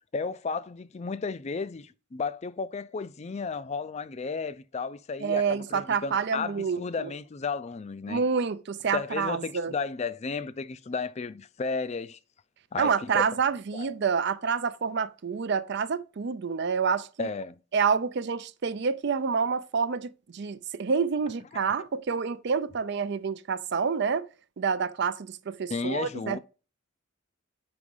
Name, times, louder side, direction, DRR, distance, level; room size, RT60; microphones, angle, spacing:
voice 1, 0.1-8.2 8.9-12.2 12.7-13.3 13.7-13.9 17.2-17.6 25.7-26.4, left 4 dB, 35° left, 0.4 m, -33 dB
voice 2, 5.2-7.1 8.1-9.7 12.8-17.3 17.7-24.3 24.6-26.4, right 6 dB, 55° right, 0.5 m, -28 dB
4.9 x 4.9 x 5.4 m
head